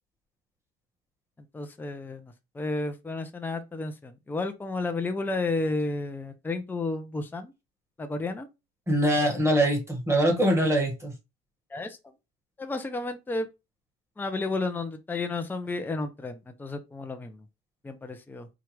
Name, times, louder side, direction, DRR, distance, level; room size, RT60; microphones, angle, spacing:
voice 1, 1.5-7.5 8.0-8.5 11.7-12.0 12.6-13.5 14.2-17.4 17.8-18.5, left 3 dB, 10° left, 0.5 m, -32 dB
voice 2, 8.9-11.1, right 1 dB, 15° right, 1.7 m, -23 dB
4.5 x 2.4 x 3.1 m
cardioid pair, 115°, 20 cm